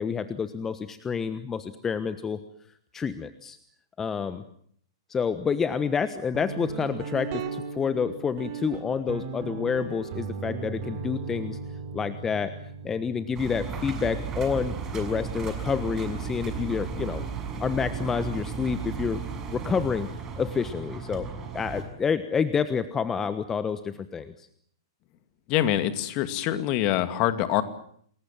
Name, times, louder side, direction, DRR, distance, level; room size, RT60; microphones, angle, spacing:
voice 1, 0.0-2.4 2.9-3.6 4.0-4.4 5.1-11.6 11.9-12.5 12.8-17.2 17.6-19.2 19.5-20.1 20.4-24.5, left 6 dB, 15° left, 12 dB, 1.3 m, -28 dB
Guitar, 6.3-15.8, right 5 dB, 50° right, 4.8 m, -37 dB
Engine, 13.3-21.8, right 6 dB, 25° right, 6.3 m, -34 dB
voice 2, 25.5-27.6, left 12 dB, 40° left, 10 dB, 2.4 m, -25 dB
29.0 x 21.5 x 7.4 m, 0.63 s
figure-of-eight pair, 110°, 2 cm